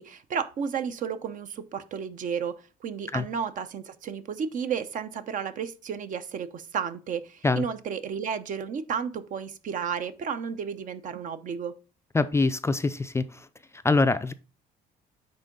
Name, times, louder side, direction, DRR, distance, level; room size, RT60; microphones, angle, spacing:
voice 1, 0.0-11.7, right 7 dB, 50° right, 0.7 m, -32 dB
voice 2, 12.1-13.5 13.8-14.3, left 3 dB, 15° left, 0.4 m, -24 dB
9.6 x 3.8 x 3.8 m
cardioid pair, 110°, 17 cm